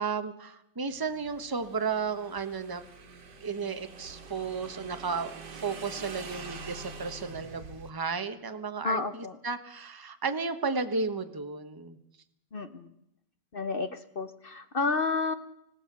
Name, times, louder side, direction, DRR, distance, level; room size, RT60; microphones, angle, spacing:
voice 1, 0.0-2.8 3.4-12.0, right 5 dB, 15° right, 8 dB, 0.8 m, -33 dB
Motorcycle / Engine, 0.9-7.9, right 4 dB, 55° right, 2.1 m, -45 dB
voice 2, 8.8-9.4 12.5-12.9 13.5-15.3, left 4 dB, 40° left, 10 dB, 0.7 m, -30 dB
25.5 x 18.5 x 6.9 m, 0.80 s
omnidirectional pair, 2.3 m